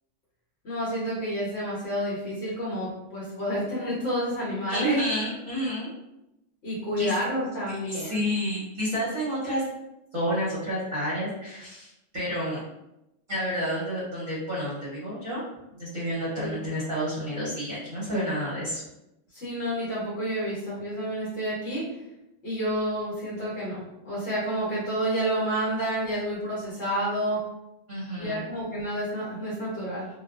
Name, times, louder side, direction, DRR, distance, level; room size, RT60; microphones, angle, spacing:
voice 1, 0.6-5.0 6.6-8.3 16.3-16.6 19.3-21.8 22.4-27.4 28.2-30.1, equal, 65° left, -8 dB, 1.1 m, -29 dB
voice 2, 4.7-5.9 7.0-7.1 7.9-9.6 10.1-12.6 13.3-15.4 15.7-18.8 27.9-28.4, equal, 45° right, -8 dB, 0.8 m, -30 dB
2.4 x 2.2 x 2.3 m, 0.90 s
omnidirectional pair, 1.3 m